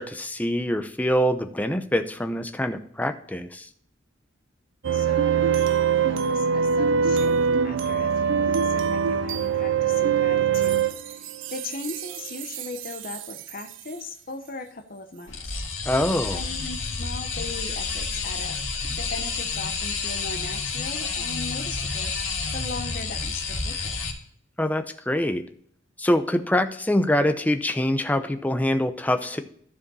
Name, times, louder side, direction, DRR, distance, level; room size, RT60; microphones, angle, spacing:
voice 1, 0.0-3.7 15.9-16.4 24.6-25.4 26.0-29.4, left 1 dB, 10° left, 8 dB, 0.6 m, -24 dB
sound 1, 4.8-13.7, right 7 dB, 70° right, 0.5 m, -24 dB
voice 2, 4.9-7.4 7.6-11.2 11.5-15.6 16.3-22.1 22.5-24.0, left 3 dB, 45° left, 7 dB, 0.8 m, -38 dB
sound 2, 15.3-24.1, left 4 dB, 90° left, 2.1 m, -30 dB
14.0 x 4.9 x 4.2 m, 0.63 s
head